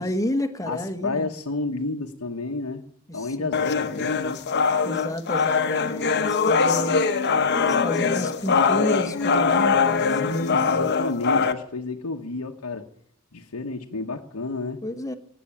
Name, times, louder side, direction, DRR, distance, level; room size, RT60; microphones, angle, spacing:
voice 1, 0.0-1.3 3.1-3.6 4.8-7.0 7.8-10.9 14.8-15.2, left 1 dB, 15° left, 1.2 m, -31 dB
voice 2, 0.7-2.8 3.1-4.4 10.0-12.9 13.3-14.8, left 3 dB, 75° left, 1.1 m, -31 dB
sound 1, 3.5-11.5, left 5 dB, 50° left, 1.0 m, -22 dB
17.5 x 8.1 x 9.8 m
head